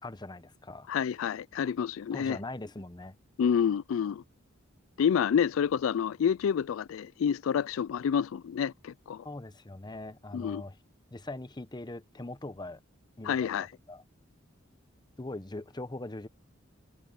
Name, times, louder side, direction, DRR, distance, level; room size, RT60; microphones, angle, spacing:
voice 1, 0.0-0.9 2.1-3.2 9.2-10.8 11.1-12.8 13.2-14.0 15.2-16.3, left 2 dB, 20° left, 0.9 m, -41 dB
voice 2, 0.9-2.4 3.4-4.2 5.0-9.3 10.3-10.6 13.2-13.7, left 7 dB, 75° left, 0.3 m, -28 dB
head